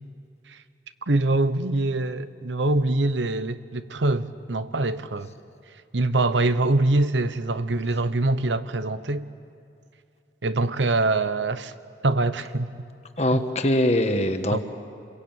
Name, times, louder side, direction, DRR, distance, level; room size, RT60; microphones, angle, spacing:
voice 1, 1.1-5.3 5.9-9.2 10.4-11.7 12.0-12.7 13.3-13.4 14.5-14.6, right 2 dB, 90° right, 13 dB, 1.0 m, -24 dB
voice 2, 13.2-14.6, left 1 dB, 35° left, 7 dB, 1.4 m, -22 dB
28.5 x 22.5 x 9.0 m, 2.5 s
head